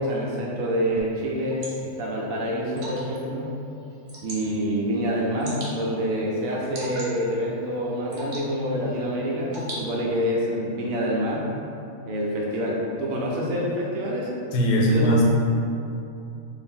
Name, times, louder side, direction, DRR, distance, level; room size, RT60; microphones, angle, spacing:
voice 1, 0.0-3.5 4.2-11.4 12.1-14.4 14.8-15.3, equal, 70° right, -3 dB, 0.9 m, -27 dB
Water / Drip, 1.0-10.3, right 1 dB, 90° right, 1.4 m, -42 dB
voice 2, 14.5-15.3, equal, 90° left, -2 dB, 1.2 m, -19 dB
3.3 x 2.6 x 3.6 m, 2.7 s
omnidirectional pair, 1.7 m